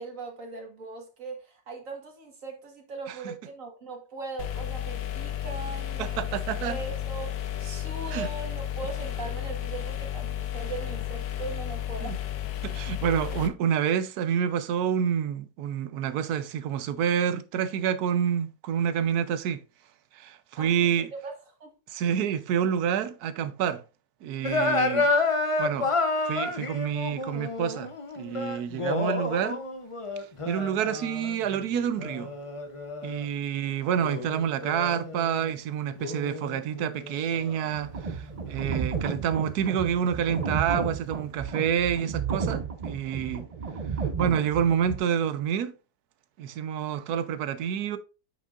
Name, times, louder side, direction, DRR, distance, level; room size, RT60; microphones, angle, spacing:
voice 1, 0.0-6.4 6.7-12.2 20.6-21.7, right 3 dB, 55° right, 2.0 m, -40 dB
sound 1, 4.4-13.5, left 11 dB, 85° left, 1.3 m, -33 dB
voice 2, 6.0-6.8 8.1-8.3 12.0-12.2 12.6-19.6 20.1-21.1 21.9-23.8 24.2-25.1 25.6-25.9 26.2-29.6 30.5-32.3 33.0-43.5 44.2-45.7 46.4-48.0, right 8 dB, 80° right, 1.2 m, -28 dB
sound 2, 24.4-33.3 34.0-35.5 36.0-38.9, left 3 dB, 35° left, 0.5 m, -30 dB
sound 3, 37.7-45.0, right 6 dB, 40° right, 0.5 m, -32 dB
7.4 x 6.2 x 2.5 m
omnidirectional pair, 1.6 m